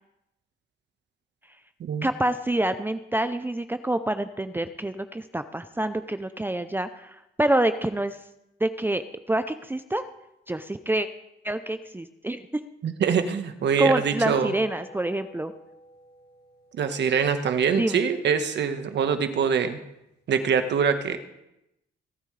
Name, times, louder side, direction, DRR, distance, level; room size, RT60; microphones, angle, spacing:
voice 1, 2.0-8.2 8.6-10.0 10.5-11.1 11.4-12.6 13.8-15.5 17.8-18.0, right 1 dB, 10° right, 10 dB, 0.6 m, -27 dB
voice 2, 12.8-14.5 16.7-19.8 20.3-21.2, right 6 dB, 60° right, 8 dB, 1.4 m, -24 dB
sound 1, 14.3-18.9, left 3 dB, 55° left, 1.6 m, -48 dB
26.5 x 9.1 x 3.3 m, 0.86 s
cardioid pair, 90°, 20 cm